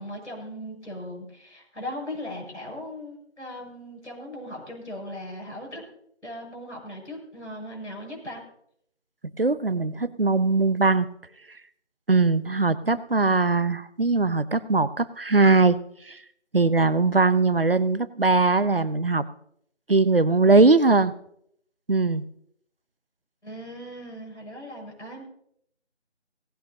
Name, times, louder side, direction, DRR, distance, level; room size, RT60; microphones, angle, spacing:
voice 1, 0.0-5.8 6.2-8.4 23.4-25.2, left 1 dB, 80° left, -1 dB, 7.6 m, -38 dB
voice 2, 9.4-11.1 12.1-15.8 16.0-16.2 16.5-19.2 19.9-21.1 21.9-22.2, right 3 dB, 55° right, 16 dB, 0.7 m, -20 dB
18.0 x 16.5 x 2.8 m, 0.68 s
figure-of-eight pair, 170°, 35 cm